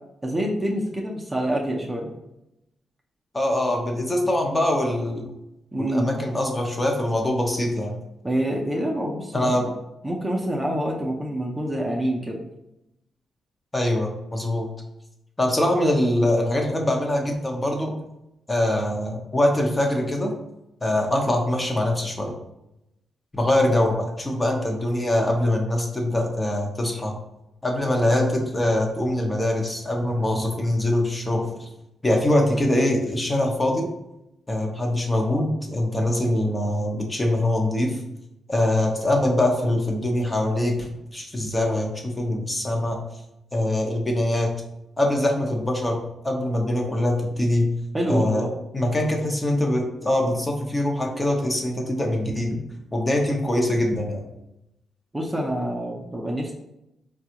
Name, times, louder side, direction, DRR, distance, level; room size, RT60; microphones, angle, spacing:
voice 1, 0.2-2.1 5.7-6.1 8.2-9.7 10.0-12.4 47.9-48.5 55.1-56.5, right 1 dB, 15° right, -2 dB, 0.6 m, -26 dB
voice 2, 3.3-5.3 5.8-8.0 9.3-9.6 13.7-14.7 15.4-17.9 18.5-20.3 20.8-22.3 23.3-27.1 27.6-31.7 32.0-33.9 34.5-38.0 38.5-43.0 43.5-44.5 45.0-47.7 48.1-48.4 48.7-52.6 52.9-54.2, left 1 dB, 20° left, 1 dB, 0.8 m, -23 dB
4.0 x 2.3 x 2.9 m, 0.87 s
cardioid pair, 65°, 0 cm